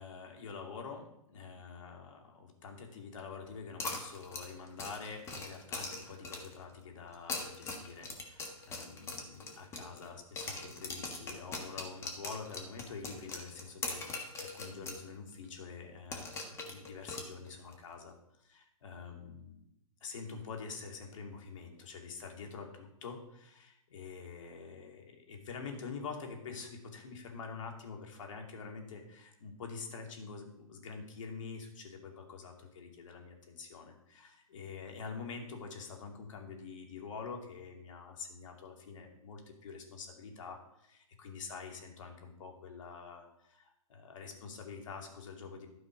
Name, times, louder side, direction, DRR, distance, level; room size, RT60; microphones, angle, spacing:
voice 1, 0.0-19.6 20.0-45.7, left 5 dB, 60° left, 2 dB, 2.6 m, -46 dB
sound 1, 3.8-6.6 7.1-10.1 10.4-15.0 15.3-15.4 16.1-17.7, left 3 dB, 15° left, 1.4 m, -41 dB
12.5 x 5.6 x 5.2 m, 0.78 s
hypercardioid pair, 135°, 18 cm